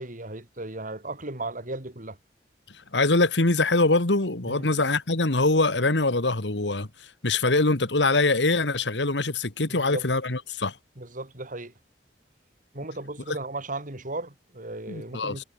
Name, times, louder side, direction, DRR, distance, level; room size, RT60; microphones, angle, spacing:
voice 1, 0.0-2.2 4.5-4.7 9.7-10.1 11.0-11.7 12.7-15.4, right 2 dB, 50° right, 3.8 m, -36 dB
voice 2, 2.9-6.9 7.2-10.7 14.9-15.4, left 2 dB, 80° left, 2.1 m, -23 dB
head